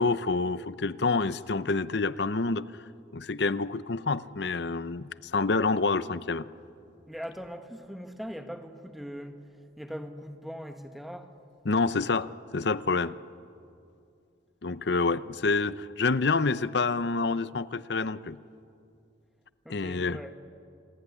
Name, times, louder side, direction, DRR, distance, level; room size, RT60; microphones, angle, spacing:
voice 1, 0.0-2.7 3.1-6.5 11.6-13.1 14.6-18.4 19.7-20.2, left 3 dB, 60° left, 15 dB, 0.7 m, -27 dB
voice 2, 7.1-9.5 9.8-11.3 19.6-20.3, equal, ahead, 6 dB, 1.5 m, -40 dB
28.0 x 21.5 x 9.8 m, 2.6 s
head